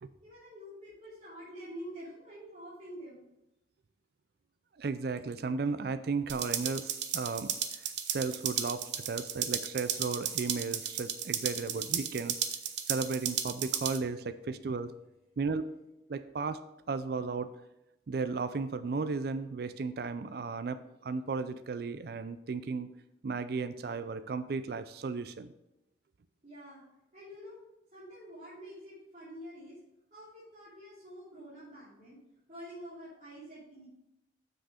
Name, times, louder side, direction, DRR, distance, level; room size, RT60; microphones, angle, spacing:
voice 1, 0.2-3.2 26.4-26.8 27.1-27.6 27.9-29.8 30.1-32.2 32.5-33.9, equal, 40° right, -11 dB, 3.2 m, -47 dB
voice 2, 4.8-12.4 12.9-14.9 15.4-15.7 16.1-16.6 16.9-17.5 18.1-22.9 23.2-25.5, right 4 dB, 60° right, 12 dB, 0.4 m, -35 dB
sound 1, 6.3-14.0, right 9 dB, 75° right, 0.8 m, -34 dB
7.6 x 6.2 x 4.9 m, 0.89 s
head